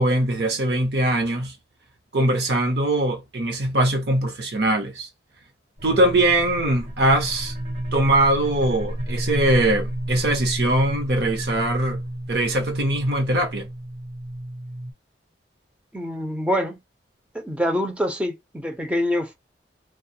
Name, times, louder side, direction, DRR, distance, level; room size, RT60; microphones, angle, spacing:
voice 1, 0.0-1.5 2.1-5.1 5.8-7.5 7.9-12.0 12.3-13.7, right 1 dB, 65° right, 0.9 m, -21 dB
sound 1, 5.8-14.9, right 1 dB, 40° right, 0.7 m, -31 dB
voice 2, 15.9-16.8 17.3-19.4, equal, 5° right, 0.5 m, -25 dB
2.2 x 2.2 x 2.7 m
head